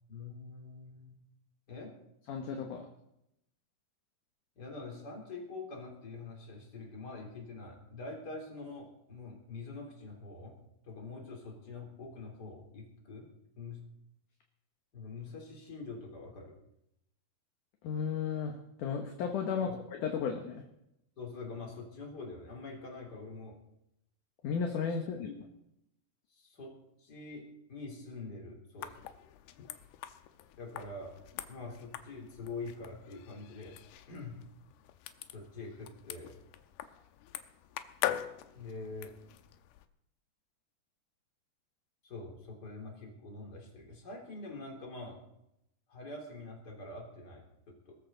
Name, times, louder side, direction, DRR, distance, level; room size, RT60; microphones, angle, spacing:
voice 1, 0.1-1.2 1.7-1.9 4.6-10.5 10.8-13.3 13.6-13.8 14.9-16.5 19.5-19.8 21.2-23.6 25.3-25.4 26.3-26.7 27.0-27.4 27.7-28.9 30.6-31.1 31.5-33.7 34.1-34.4 35.3-36.4 38.5-39.1 42.0-45.2 45.9-48.0, left 3 dB, 25° left, 0 dB, 3.6 m, -45 dB
voice 2, 2.3-2.9 17.8-20.6 24.4-25.3, left 6 dB, 65° left, 4 dB, 2.4 m, -34 dB
sound 1, 28.8-39.9, left 12 dB, 80° left, 2.7 m, -43 dB
21.5 x 13.5 x 4.0 m, 0.81 s
omnidirectional pair, 4.6 m